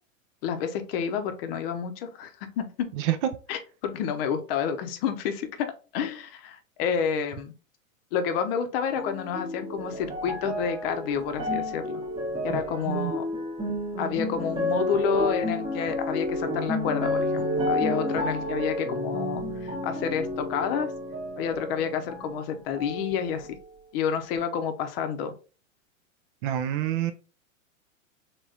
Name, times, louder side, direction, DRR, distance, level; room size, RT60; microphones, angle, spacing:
voice 1, 0.4-2.9 3.5-7.5 8.1-12.0 12.4-13.2 14.0-20.9 21.4-23.6 23.9-25.3, left 7 dB, 45° left, 8 dB, 0.7 m, -29 dB
sound 1, 8.9-22.4 22.7-23.7 24.4-24.5, left 1 dB, 10° right, 0.9 m, -31 dB
voice 2, 12.5-13.1 26.4-27.1, right 13 dB, 40° right, 8 dB, 0.4 m, -28 dB
3.5 x 3.0 x 2.7 m, 0.35 s
hypercardioid pair, 110°, 41 cm